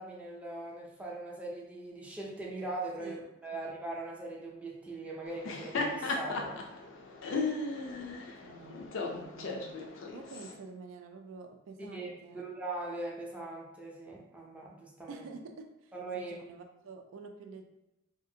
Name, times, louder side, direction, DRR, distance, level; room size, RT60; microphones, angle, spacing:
voice 1, 0.0-6.6 11.9-15.2 15.9-16.3, right 2 dB, 5° right, -4 dB, 0.4 m, -40 dB
voice 2, 3.0-3.7 8.4-9.8 10.1-12.4 15.1-17.7, right 4 dB, 75° right, 4 dB, 0.3 m, -48 dB
Laughter, 5.3-10.5, left 3 dB, 70° left, 0.4 m, -36 dB
2.7 x 2.4 x 2.7 m, 0.89 s
head